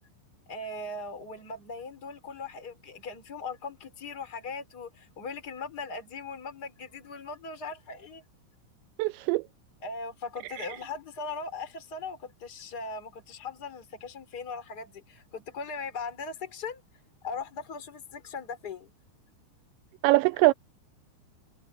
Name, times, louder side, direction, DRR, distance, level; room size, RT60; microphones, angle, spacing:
voice 1, 0.5-8.2 9.8-16.8 17.2-18.9, left 4 dB, 20° left, 3.6 m, -39 dB
voice 2, 9.0-9.4 10.6-10.7 20.0-20.5, right 21 dB, 85° right, 2.6 m, -22 dB
omnidirectional pair, 5.5 m